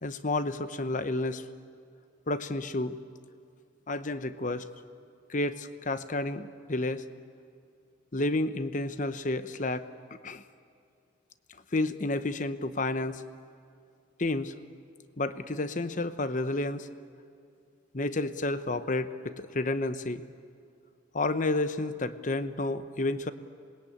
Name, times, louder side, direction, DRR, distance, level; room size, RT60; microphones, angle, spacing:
voice 1, 0.0-1.4 2.3-3.0 3.9-4.7 5.3-7.0 8.1-9.9 10.2-10.4 11.7-13.2 14.2-14.5 15.2-16.9 17.9-20.2 21.1-23.3, left 2 dB, 40° left, 11 dB, 0.9 m, -30 dB
26.5 x 21.0 x 8.8 m, 2.3 s
head